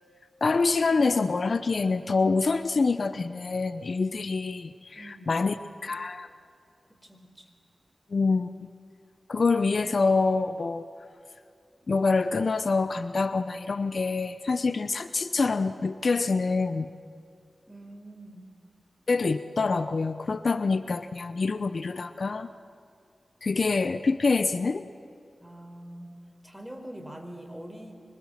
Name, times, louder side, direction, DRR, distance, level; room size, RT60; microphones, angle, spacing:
voice 1, 0.4-5.6 5.8-6.3 8.1-8.5 9.3-10.9 11.9-16.9 19.1-22.5 23.4-24.9, left 4 dB, 65° left, 12 dB, 0.8 m, -26 dB
voice 2, 4.9-5.5 6.9-7.5 17.7-18.5 25.4-26.2 26.4-27.9, right 1 dB, 5° right, 4 dB, 4.5 m, -44 dB
25.5 x 24.5 x 7.5 m, 2.4 s
cardioid pair, 55°, 0 cm